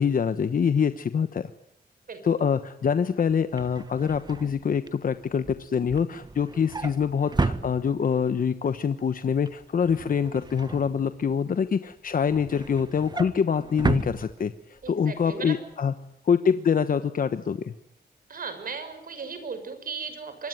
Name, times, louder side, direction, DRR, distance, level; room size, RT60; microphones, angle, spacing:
voice 1, 0.0-1.5 2.2-15.9 16.2-17.7, left 7 dB, 60° left, 11 dB, 1.1 m, -25 dB
voice 2, 2.1-2.4 14.8-15.6 18.3-20.5, right 5 dB, 60° right, 9 dB, 6.1 m, -36 dB
Drawer open or close, 3.3-8.3 8.7-9.0 9.3-11.5 11.9-14.9 15.3-15.5 15.7-15.8, right 3 dB, 25° right, 1.3 m, -33 dB
25.5 x 22.0 x 9.3 m, 0.73 s
wide cardioid pair, 100°, 16 cm